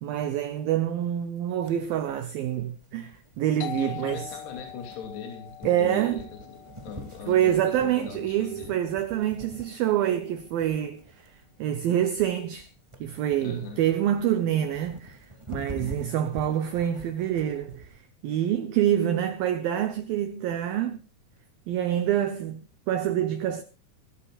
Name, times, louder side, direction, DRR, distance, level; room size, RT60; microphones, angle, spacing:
voice 1, 0.0-4.3 5.6-6.2 7.3-12.7 13.0-21.0 21.7-23.6, right 11 dB, 75° right, 2.3 m, -26 dB
sound 1, 1.7-18.0, equal, 20° right, 0.7 m, -46 dB
Doorbell, 3.6-9.0, left 11 dB, 90° left, 1.9 m, -43 dB
voice 2, 3.7-6.2 6.5-8.7 13.4-13.8 15.8-16.1, left 6 dB, 70° left, 4.9 m, -40 dB
23.5 x 13.0 x 2.4 m
omnidirectional pair, 4.9 m